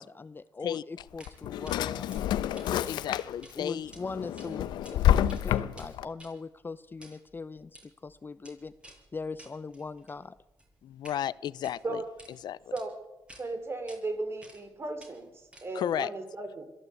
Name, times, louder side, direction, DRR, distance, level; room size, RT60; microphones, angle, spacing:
voice 1, 0.0-2.2 2.7-3.0 3.6-8.7 9.1-10.3, left 4 dB, 30° left, 15 dB, 0.7 m, -41 dB
Drawer open or close, 1.0-3.6 4.0-6.0, left 11 dB, 90° left, 1.0 m, -28 dB
sound 1, 1.2-1.4 1.7-1.8 2.1-3.6 3.8-4.0 4.4-4.9 5.2-11.2 11.5-12.3 12.8-12.9 13.3-13.4 13.9-14.0 14.4-14.7 15.0-15.9, right 1 dB, 15° right, 7.1 m, -53 dB
voice 2, 2.9-3.9 10.8-12.0 12.4-12.6 15.7-16.1, left 10 dB, 70° left, 19 dB, 0.6 m, -33 dB
voice 3, 13.4-16.6, right 2 dB, 35° right, 8 dB, 4.5 m, -36 dB
22.0 x 14.5 x 8.4 m, 0.99 s
cardioid pair, 85°, 7 cm